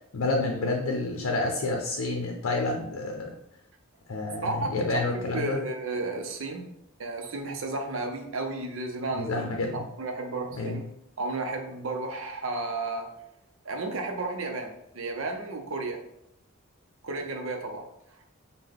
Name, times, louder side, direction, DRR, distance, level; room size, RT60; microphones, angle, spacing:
voice 1, 0.1-3.3 4.1-5.6 9.1-9.8 10.5-10.8, left 2 dB, 85° left, 2 dB, 0.6 m, -29 dB
voice 2, 4.4-6.7 7.0-10.8 11.2-13.1 13.6-16.0 17.0-17.9, right 2 dB, 75° right, 4 dB, 0.6 m, -33 dB
5.5 x 2.2 x 3.5 m, 0.79 s
head